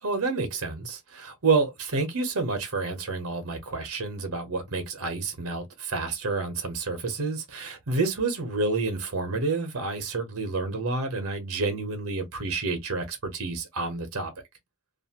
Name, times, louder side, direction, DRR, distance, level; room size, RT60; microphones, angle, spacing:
voice 1, 0.0-14.3, right 3 dB, 85° right, 1.0 m, -29 dB
2.7 x 2.4 x 2.8 m
head